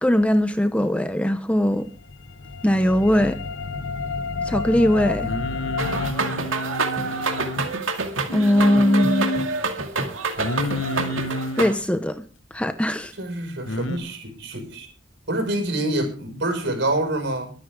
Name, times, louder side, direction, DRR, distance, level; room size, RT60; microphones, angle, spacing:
voice 1, 0.0-1.9 2.6-3.4 4.4-5.3 8.3-9.3 11.6-12.2 12.5-13.1, equal, 5° left, 0.7 m, -20 dB
sound 1, 1.8-6.1, left 4 dB, 65° left, 0.9 m, -30 dB
Singing, 5.2-7.7 8.3-9.5 10.4-11.7 13.7-14.0, left 1 dB, 85° left, 1.4 m, -29 dB
sound 2, 5.8-11.8, right 3 dB, 85° right, 2.3 m, -27 dB
voice 2, 13.2-14.9 15.3-17.5, right 1 dB, 60° right, 5.9 m, -26 dB
23.0 x 9.7 x 3.7 m
head